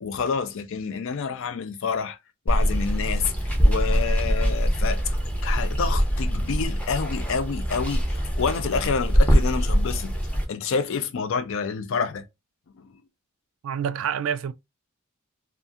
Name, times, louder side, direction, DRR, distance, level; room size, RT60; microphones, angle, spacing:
voice 1, 0.0-2.2 2.5-3.3 3.6-5.0 5.4-10.1 10.5-12.2 12.8-12.9, left 5 dB, 60° left, 0.4 m, -28 dB
Water, 2.5-10.4, equal, 5° left, 0.6 m, -23 dB
voice 2, 13.6-14.5, right 8 dB, 65° right, 0.3 m, -27 dB
2.7 x 2.4 x 2.3 m
head